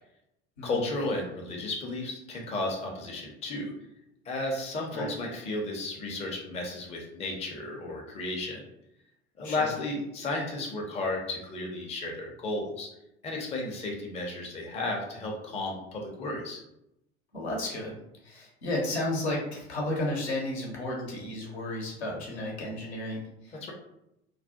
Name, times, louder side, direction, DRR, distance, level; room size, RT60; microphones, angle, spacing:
voice 1, 0.6-3.7 4.3-8.7 9.4-12.9 13.2-16.6 23.6-23.7, left 2 dB, 20° left, -1 dB, 0.5 m, -33 dB
voice 2, 17.3-18.0 18.2-23.2 23.5-23.6, left 1 dB, 70° left, -2 dB, 0.8 m, -33 dB
2.3 x 2.0 x 2.7 m, 0.84 s
figure-of-eight pair, 65°, 34 cm